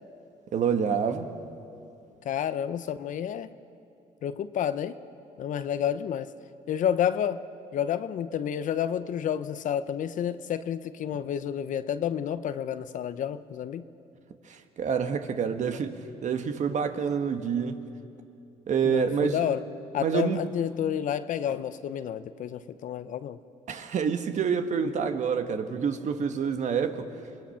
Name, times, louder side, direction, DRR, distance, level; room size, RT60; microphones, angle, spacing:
voice 1, 0.5-1.3 14.5-16.0 16.2-17.8 18.7-19.4 20.0-20.5 23.7-27.1, right 7 dB, 55° right, 1.4 m, -27 dB
voice 2, 2.2-3.5 4.2-5.0 5.4-6.3 6.7-7.4 7.7-13.8 18.8-19.6 19.9-23.4, left 9 dB, 65° left, 0.8 m, -30 dB
27.0 x 20.5 x 5.8 m
supercardioid pair, 80°, 14 cm